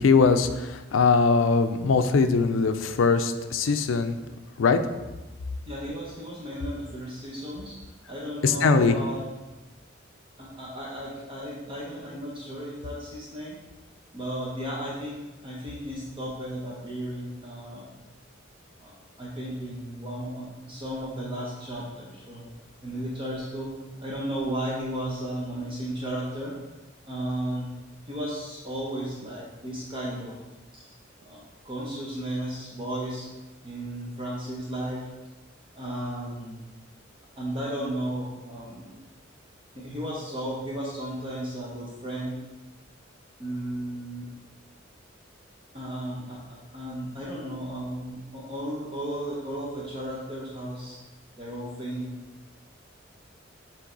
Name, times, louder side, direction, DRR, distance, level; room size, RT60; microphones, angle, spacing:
voice 1, 0.0-4.2 4.6-4.8 8.4-8.9, left 4 dB, 80° left, 9 dB, 0.4 m, -21 dB
voice 2, 5.6-7.8 8.1-9.3 10.4-13.6 14.1-17.9 18.8-22.5 22.8-26.5 27.1-27.7 28.1-30.4 31.2-33.3 33.6-35.1 35.7-36.6 37.4-39.0 39.7-42.4 43.4-44.3 45.7-51.0 51.4-52.1, right 1 dB, 25° right, -5 dB, 0.9 m, -34 dB
7.5 x 3.3 x 3.9 m, 1.1 s
head